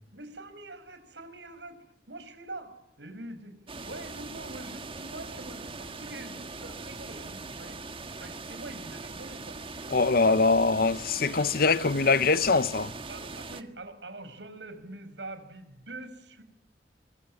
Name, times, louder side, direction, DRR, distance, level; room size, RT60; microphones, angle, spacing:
voice 1, 0.1-1.8 2.1-3.6 3.8-9.6 13.1-16.4, right 2 dB, 90° right, 5.7 m, -44 dB
sound 1, 3.7-13.6, right 3 dB, 30° right, 1.8 m, -41 dB
voice 2, 9.9-12.9, left 4 dB, 55° left, 1.0 m, -23 dB
25.5 x 23.5 x 9.8 m
head